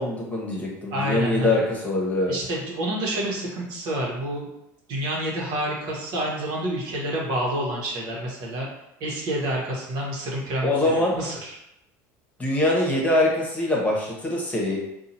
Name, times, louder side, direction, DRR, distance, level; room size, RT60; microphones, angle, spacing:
voice 1, 0.0-2.3 10.6-11.1 12.4-14.8, left 2 dB, 15° left, -3 dB, 1.1 m, -23 dB
voice 2, 0.9-1.6 2.3-4.5 4.9-8.7 9.0-11.6, right 1 dB, 65° right, -3 dB, 1.2 m, -28 dB
2.8 x 2.4 x 4.2 m, 0.84 s
supercardioid pair, 100°, 8 cm